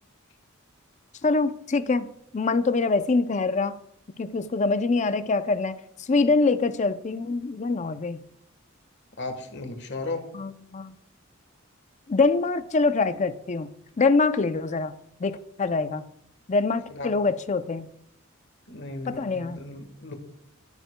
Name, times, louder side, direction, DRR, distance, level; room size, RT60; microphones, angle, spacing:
voice 1, 1.2-2.1 2.3-3.7 4.2-8.2 10.3-11.0 12.1-13.7 14.0-14.9 15.2-16.0 16.5-17.9 19.1-19.6, left 3 dB, 35° left, 12 dB, 0.5 m, -24 dB
voice 2, 9.2-10.3 16.9-17.1 18.7-20.1, left 2 dB, 55° left, 6 dB, 1.3 m, -35 dB
11.0 x 10.5 x 2.2 m, 0.73 s
head